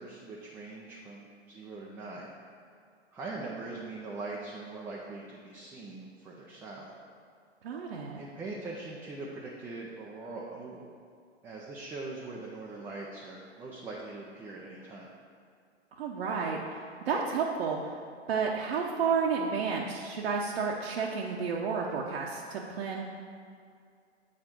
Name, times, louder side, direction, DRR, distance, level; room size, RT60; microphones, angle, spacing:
voice 1, 0.0-2.3 3.1-6.9 8.1-10.9 11.4-15.1, right 3 dB, 5° right, -4 dB, 0.3 m, -42 dB
voice 2, 7.6-8.2 16.0-17.8 18.3-23.0, right 5 dB, 60° right, -2 dB, 0.8 m, -31 dB
7.6 x 4.2 x 5.9 m, 2.3 s
figure-of-eight pair, 105°, 35 cm